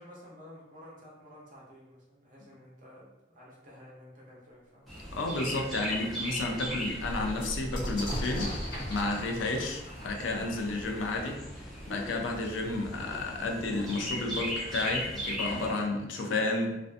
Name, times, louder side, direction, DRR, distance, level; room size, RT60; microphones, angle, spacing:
voice 1, 0.0-4.9, left 1 dB, 45° right, -5 dB, 0.7 m, -52 dB
Chirp tweet, 4.9-15.7, equal, ahead, 0.6 m, -39 dB
voice 2, 5.1-8.5 8.9-11.4 11.9-16.8, left 2 dB, 85° left, 2 dB, 0.4 m, -31 dB
sound 1, 5.3-5.4 5.9-6.0 6.3-11.8 12.8-12.9 13.1-13.7, equal, 50° left, 0.9 m, -39 dB
2.5 x 2.2 x 2.5 m, 0.97 s
head